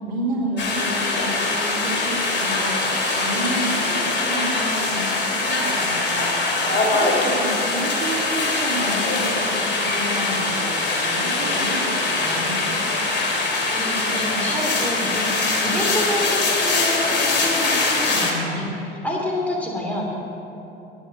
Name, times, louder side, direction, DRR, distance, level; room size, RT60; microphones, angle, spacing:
voice 1, 0.0-5.1 5.4-6.2 6.9-10.7 11.0-12.7, right 1 dB, 75° right, -4 dB, 2.5 m, -30 dB
sound 1, 0.6-18.3, left 3 dB, 35° left, 2.5 m, -22 dB
voice 2, 7.2-7.6 13.6-20.1, left 1 dB, 5° left, -2 dB, 2.8 m, -28 dB
9.9 x 9.0 x 7.3 m, 2.9 s
figure-of-eight pair, 65°, 31 cm